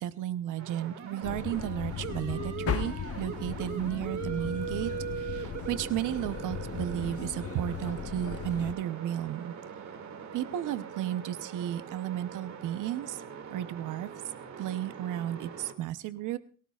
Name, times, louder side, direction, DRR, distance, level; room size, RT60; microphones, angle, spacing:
voice 1, 0.0-4.9 5.2-9.5 10.3-13.2 13.5-14.1 14.6-16.4, right 12 dB, 85° right, 12 dB, 0.8 m, -33 dB
sound 1, 0.6-15.7, right 7 dB, 65° right, 2.3 m, -41 dB
sound 2, 1.2-8.7, left 8 dB, 50° left, 1.1 m, -37 dB
22.5 x 17.0 x 2.4 m, 0.41 s
cardioid pair, 90°, 30 cm